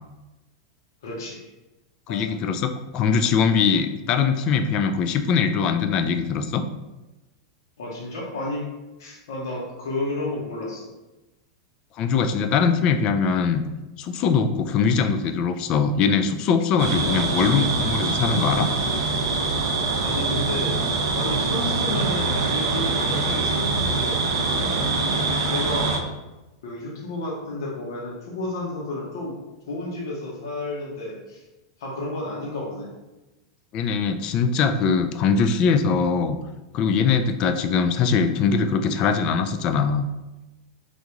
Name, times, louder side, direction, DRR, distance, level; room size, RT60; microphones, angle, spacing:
voice 1, 1.0-1.5 2.1-2.3 7.8-8.7 9.0-10.9 20.0-26.0 26.6-29.4 29.7-31.4 31.8-32.9, left 2 dB, 75° left, -3 dB, 0.9 m, -32 dB
voice 2, 2.1-6.6 12.0-13.6 14.0-18.7 33.7-36.4 36.7-40.1, left 5 dB, 45° left, 7 dB, 0.3 m, -22 dB
sound 1, 16.8-26.0, right 3 dB, 70° right, 0.6 m, -24 dB
3.5 x 2.5 x 2.9 m, 1.0 s
hypercardioid pair, 105°, 2 cm